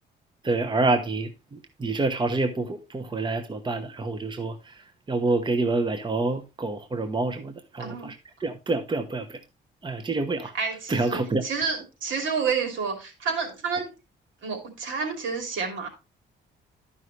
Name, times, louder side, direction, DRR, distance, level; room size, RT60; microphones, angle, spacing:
voice 1, 0.4-4.7 5.1-8.1 8.4-9.4 9.8-10.5 10.9-11.4, right 3 dB, 25° right, 1.0 m, -27 dB
voice 2, 7.8-8.1 10.5-13.9 14.4-15.9, right 5 dB, 75° right, 2.9 m, -29 dB
12.5 x 5.6 x 3.2 m
cardioid pair, 90°, 20 cm